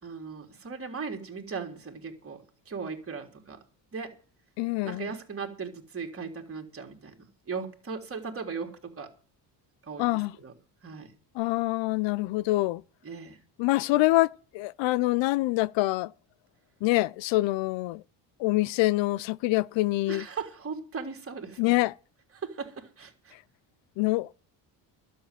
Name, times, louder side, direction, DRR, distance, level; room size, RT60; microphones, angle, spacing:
voice 1, 0.0-3.6 3.9-4.1 4.8-9.1 9.8-10.5 10.8-11.1 13.0-13.4 20.1-21.7 22.3-23.3, right 5 dB, 30° right, 3.6 m, -38 dB
voice 2, 4.6-5.1 10.0-10.3 11.4-12.8 13.6-16.1 16.8-18.0 18.4-20.2 21.6-21.9 24.0-24.3, left 19 dB, 90° left, 0.6 m, -25 dB
12.5 x 7.6 x 9.2 m
cardioid pair, 115°, 43 cm